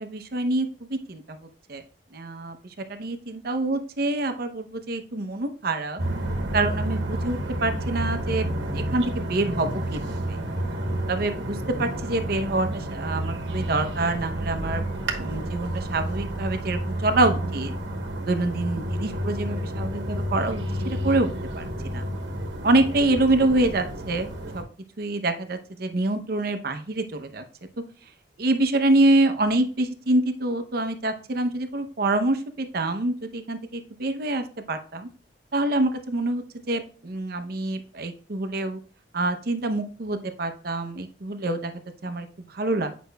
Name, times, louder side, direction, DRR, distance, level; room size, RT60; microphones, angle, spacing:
voice 1, 0.0-1.4 1.7-1.8 2.1-2.6 2.9-6.0 6.5-10.4 11.1-14.8 15.2-17.7 18.3-22.0 22.6-24.3 24.5-24.6 25.0-27.4 28.4-35.1 35.5-38.8 39.1-41.7 42.0-42.3 42.5-42.9, right 2 dB, 55° right, 8 dB, 0.7 m, -26 dB
sound 1, 6.0-24.6, right 1 dB, 85° right, 1.1 m, -30 dB
8.5 x 5.1 x 2.3 m, 0.41 s
head